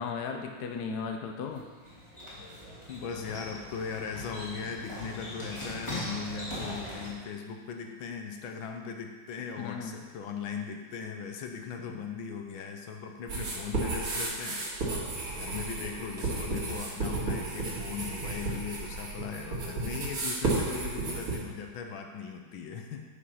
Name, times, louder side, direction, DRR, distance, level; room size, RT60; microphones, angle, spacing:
voice 1, 0.0-1.7 9.6-10.0 11.8-12.0, left 5 dB, 60° left, 4 dB, 1.2 m, -36 dB
sound 1, 1.5-7.1, left 1 dB, 15° left, 2.2 m, -40 dB
voice 2, 2.9-14.7 15.3-23.0, left 6 dB, 80° left, 4 dB, 1.5 m, -39 dB
sound 2, 13.3-21.4, right 3 dB, 90° right, 2.7 m, -33 dB
8.2 x 5.3 x 5.6 m, 1.4 s
omnidirectional pair, 2.2 m